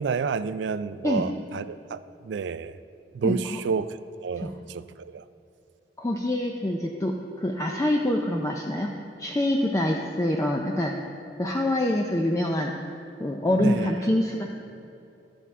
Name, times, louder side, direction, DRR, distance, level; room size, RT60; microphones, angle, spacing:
voice 1, 0.0-2.8 3.1-5.2 13.6-13.9, right 5 dB, 80° right, 14 dB, 0.3 m, -30 dB
voice 2, 6.0-10.9 11.4-12.7 13.2-14.5, left 1 dB, 20° left, 1 dB, 0.4 m, -25 dB
13.0 x 6.9 x 3.6 m, 2.7 s
head